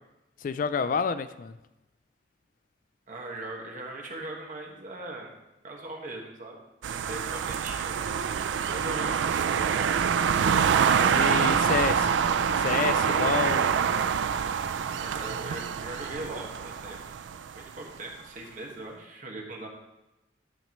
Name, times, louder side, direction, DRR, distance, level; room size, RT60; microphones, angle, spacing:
voice 1, 0.4-1.6 11.0-12.2 12.6-13.7, left 6 dB, 50° left, 12 dB, 0.3 m, -29 dB
voice 2, 3.1-5.3 5.6-6.6 6.9-10.0 15.0-17.0 17.5-19.7, right 2 dB, 45° right, 0 dB, 1.5 m, -40 dB
sound 1, 6.8-17.6, right 7 dB, 90° right, 0.4 m, -26 dB
12.0 x 6.5 x 3.1 m, 0.96 s
head